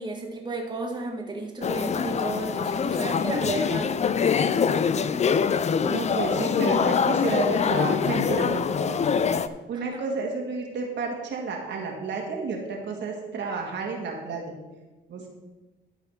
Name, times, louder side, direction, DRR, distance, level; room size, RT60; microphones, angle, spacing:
voice 1, 0.0-3.9 9.7-9.8, right 2 dB, 20° right, 0 dB, 1.7 m, -32 dB
sound 1, 1.6-9.5, left 6 dB, 35° left, 0.4 m, -24 dB
voice 2, 5.8-9.1 9.7-14.5 15.1-15.3, right 4 dB, 65° right, 0 dB, 1.9 m, -31 dB
12.5 x 4.1 x 5.6 m, 1.1 s
cardioid pair, 90°, 20 cm